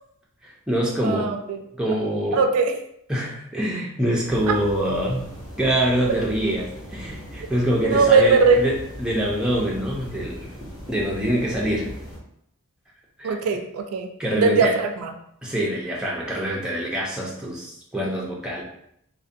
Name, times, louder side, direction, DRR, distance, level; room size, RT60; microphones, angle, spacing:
voice 1, 0.4-1.3 1.7-2.4 3.1-8.7 9.0-10.5 10.9-11.9 13.2-13.4 14.2-14.8 15.4-18.6, right 1 dB, 5° right, -4 dB, 0.3 m, -25 dB
voice 2, 1.0-1.6 2.3-2.7 4.5-4.6 7.8-8.7 13.2-14.1 14.4-15.1, right 4 dB, 80° right, 5 dB, 0.3 m, -19 dB
sound 1, 4.3-12.2, equal, 65° left, 0.8 m, -39 dB
2.5 x 2.1 x 2.5 m, 0.73 s
head